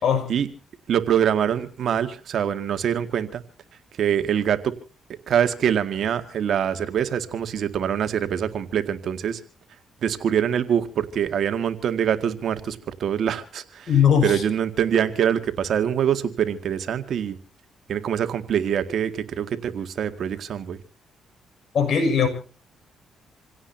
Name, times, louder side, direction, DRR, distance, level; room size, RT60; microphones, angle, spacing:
voice 1, 0.9-3.4 4.0-4.7 5.3-9.4 10.0-13.9 14.2-17.4 17.9-20.8, right 9 dB, 65° right, 9 dB, 2.0 m, -24 dB
voice 2, 13.9-14.4 21.7-22.3, left 7 dB, 60° left, 7 dB, 6.6 m, -19 dB
27.5 x 17.0 x 2.8 m, 0.38 s
cardioid pair, 90°, 0 cm